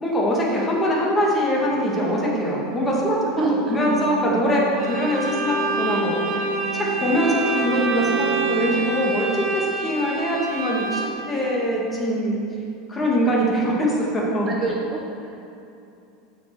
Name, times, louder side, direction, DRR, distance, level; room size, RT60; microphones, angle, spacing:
voice 1, 0.0-12.4 12.9-14.5, equal, 15° left, -4 dB, 1.8 m, -23 dB
sound 1, 1.3-9.2, right 7 dB, 80° right, 0.7 m, -34 dB
voice 2, 3.4-3.8 14.5-15.5, right 3 dB, 30° right, -1 dB, 0.8 m, -27 dB
Bowed string instrument, 4.8-11.3, right 3 dB, 55° right, 1.9 m, -27 dB
7.6 x 4.6 x 7.0 m, 2.8 s
supercardioid pair, 145°, 0 cm